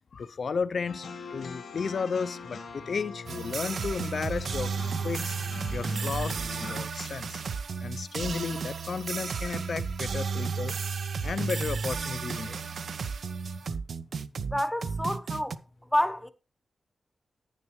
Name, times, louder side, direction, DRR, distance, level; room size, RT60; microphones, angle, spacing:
voice 1, 0.1-4.7 5.0-5.4 5.7-7.4 7.8-10.7 11.2-12.8 13.6-13.7, left 5 dB, 55° left, 0.5 m, -33 dB
sound 1, 0.9-6.8, left 4 dB, 80° left, 1.5 m, -42 dB
sound 2, 3.3-15.6, right 5 dB, 65° right, 0.5 m, -33 dB
voice 2, 14.5-15.6 15.9-16.3, equal, 5° left, 0.8 m, -28 dB
10.5 x 9.8 x 3.2 m
wide cardioid pair, 150°, 0 cm